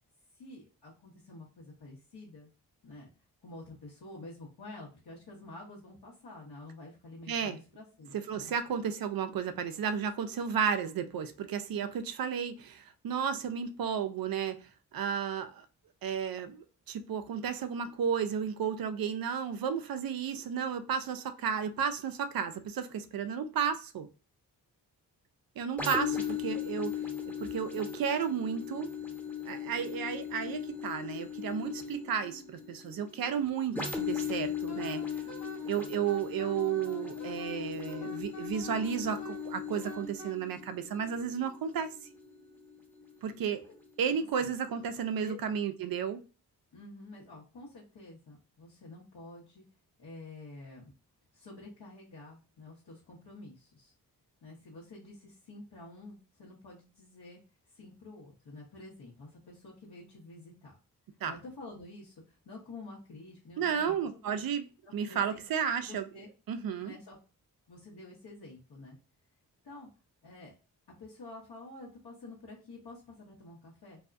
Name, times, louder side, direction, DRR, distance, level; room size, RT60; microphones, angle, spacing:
voice 1, 0.3-2.5 2.8-3.1 3.4-8.6 43.6-43.7 44.4-44.5 45.0-45.4 46.7-49.6 50.0-50.9 51.3-53.9 54.4-57.4 57.7-60.7 61.3-64.4 64.8-65.4 65.8-66.3 66.8-67.2 67.7-69.0 69.6-69.9 70.2-70.5 71.0-74.0, left 2 dB, 60° left, 1.2 m, -49 dB
voice 2, 7.3-7.6 8.1-15.7 16.0-24.1 25.6-26.9 27.4-28.9 29.4-35.0 35.7-41.9 43.2-43.6 44.0-46.2 61.2-61.3 63.6-64.7 64.9-66.0 66.5-66.9, right 7 dB, 55° right, 0.5 m, -33 dB
sound 1, 25.8-43.3 43.8-44.0, left 7 dB, 5° left, 0.9 m, -38 dB
Wind instrument woodwind instrument, 34.7-40.3, right 1 dB, 40° left, 0.9 m, -47 dB
2.7 x 2.3 x 2.5 m
supercardioid pair, 40°, 43 cm